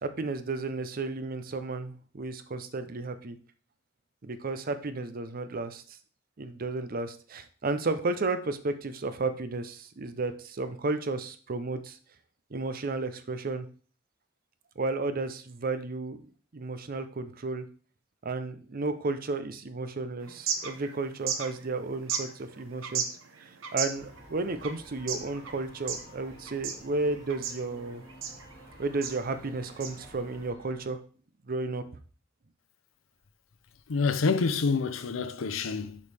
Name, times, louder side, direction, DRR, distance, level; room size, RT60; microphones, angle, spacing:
voice 1, 0.0-3.4 4.2-6.0 6.4-12.0 12.5-13.7 14.8-17.6 18.2-23.0 23.4-28.0 28.8-31.0 31.5-31.8, right 3 dB, 45° right, 0.6 m, -33 dB
sound 1, 20.2-30.5, right 7 dB, 85° right, 0.9 m, -37 dB
sound 2, 23.9-30.8, equal, 15° left, 2.4 m, -52 dB
voice 2, 33.9-36.0, left 4 dB, 85° left, 0.6 m, -27 dB
6.6 x 5.2 x 3.4 m
head